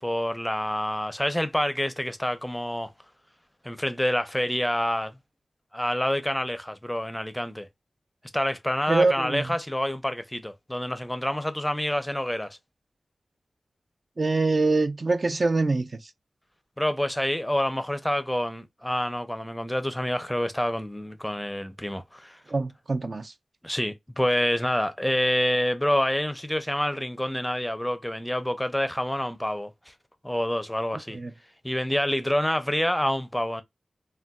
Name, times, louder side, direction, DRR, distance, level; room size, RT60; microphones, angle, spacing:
voice 1, 0.0-2.9 3.6-5.2 5.7-7.7 8.3-12.6 16.8-22.4 23.6-29.9 30.2-31.2 31.6-33.6, left 1 dB, 10° left, 0.5 m, -27 dB
voice 2, 8.9-9.5 14.2-16.1 22.5-23.3 31.1-31.3, right 3 dB, 45° right, 0.4 m, -24 dB
3.9 x 2.2 x 2.2 m
wide cardioid pair, 75°, 0 cm